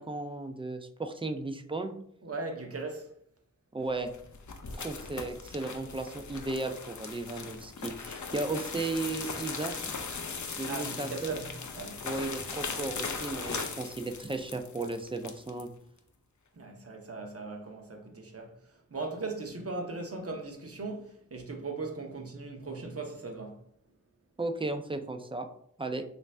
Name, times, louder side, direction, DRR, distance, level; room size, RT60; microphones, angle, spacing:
voice 1, 0.0-1.9 3.7-4.1 4.7-9.7 10.5-11.4 12.0-15.7 24.4-25.5 25.8-26.0, right 2 dB, 20° right, 0.4 m, -35 dB
voice 2, 2.2-3.1 10.7-12.0 16.5-18.6 18.9-23.6, right 3 dB, 50° right, 0.7 m, -38 dB
sound 1, 3.9-15.7, left 5 dB, 70° left, 0.5 m, -39 dB
3.2 x 2.5 x 3.2 m
wide cardioid pair, 55°, 30 cm